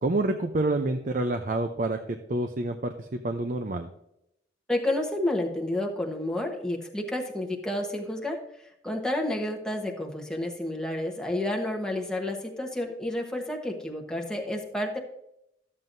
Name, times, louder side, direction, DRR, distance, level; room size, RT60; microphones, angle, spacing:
voice 1, 0.0-3.9, right 2 dB, 50° right, 6 dB, 0.6 m, -28 dB
voice 2, 4.7-15.0, left 1 dB, 5° left, 1 dB, 1.1 m, -30 dB
12.5 x 7.5 x 2.6 m, 0.79 s
head